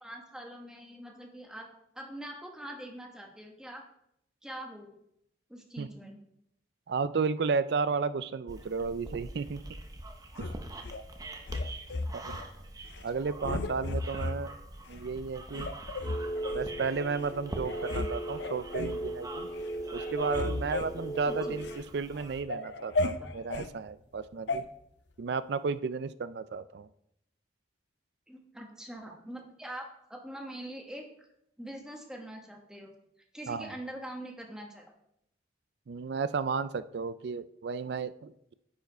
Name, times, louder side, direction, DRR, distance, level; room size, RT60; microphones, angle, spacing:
voice 1, 0.0-1.7 1.9-3.8 4.4-4.9 5.5-6.2 21.3-21.6 23.2-23.3 24.5-24.6 28.3-31.1 31.6-33.0 33.3-34.8, right 1 dB, 5° right, 1 dB, 1.1 m, -43 dB
voice 2, 6.9-9.6 10.4-10.5 12.1-12.3 13.0-14.5 14.9-15.7 16.5-19.5 19.9-24.6 25.2-26.9 33.5-33.7 35.9-38.5, right 5 dB, 60° right, 14 dB, 0.4 m, -33 dB
sound 1, 8.5-22.4, right 2 dB, 20° right, 0.8 m, -45 dB
sound 2, 10.4-11.0 11.5-12.5 12.9-13.1 13.4-14.4 14.9-15.0 15.5-16.7 17.3-17.4 17.6-18.1 18.4-19.0 19.5-19.7 20.0-21.8 22.2-23.7 24.5-24.6, left 2 dB, 70° left, 0.6 m, -34 dB
sound 3, 16.0-21.8, right 1 dB, 35° left, 1.3 m, -37 dB
10.0 x 4.8 x 4.5 m, 0.76 s
head